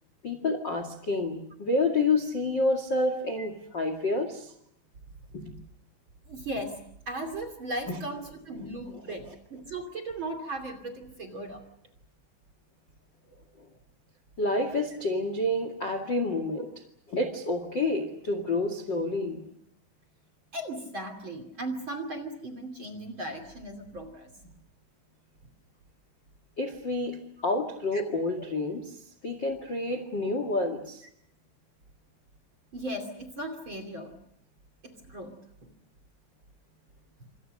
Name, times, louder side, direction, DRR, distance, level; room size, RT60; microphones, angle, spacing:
voice 1, 0.2-4.5 5.3-5.5 7.9-8.0 8.9-9.3 14.4-16.7 17.1-19.5 26.6-27.2 27.4-31.0, left 2 dB, 40° left, 8 dB, 1.6 m, -29 dB
voice 2, 6.3-6.8 7.1-11.6 20.5-24.3 27.9-28.0 32.7-34.1 34.8-35.3, right 1 dB, 35° right, 8 dB, 2.7 m, -37 dB
27.5 x 27.0 x 6.5 m, 0.74 s
omnidirectional pair, 5.4 m